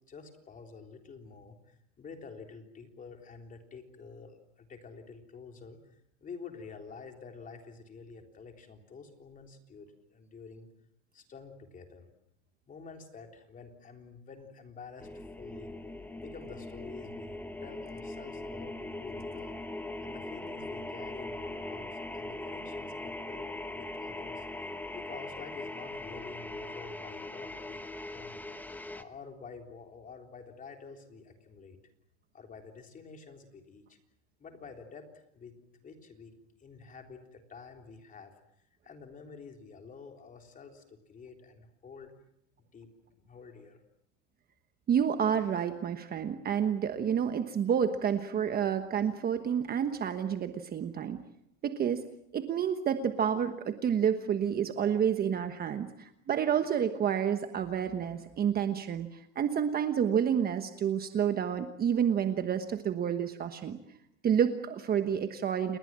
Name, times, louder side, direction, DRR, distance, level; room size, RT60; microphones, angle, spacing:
voice 1, 0.1-10.7 11.1-12.1 12.7-15.7 16.2-19.6 20.0-23.5 23.7-28.4 28.9-31.8 32.3-34.0 34.4-36.3 36.6-38.3 38.8-42.1 42.7-42.9 43.2-43.8, left 5 dB, 20° left, 4 dB, 3.6 m, -49 dB
sound 1, 15.0-29.0, left 2 dB, 5° left, 1.1 m, -40 dB
voice 2, 44.9-51.2 51.6-52.0 52.3-59.1 59.3-63.8 64.2-65.8, right 8 dB, 25° right, 8 dB, 1.2 m, -29 dB
29.0 x 20.5 x 7.5 m, 0.76 s
supercardioid pair, 150°, 35 cm